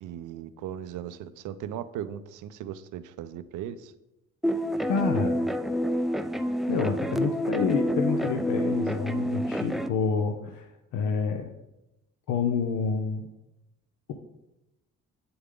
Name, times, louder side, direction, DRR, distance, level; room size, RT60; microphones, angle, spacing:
voice 1, 0.0-3.9, right 10 dB, 85° right, 13 dB, 0.6 m, -38 dB
sound 1, 4.4-9.9, equal, ahead, 0.3 m, -28 dB
voice 2, 4.9-5.4 6.7-11.5 12.3-13.3, left 5 dB, 75° left, 4 dB, 0.8 m, -28 dB
8.0 x 6.9 x 3.8 m, 0.92 s
cardioid pair, 90°, 30 cm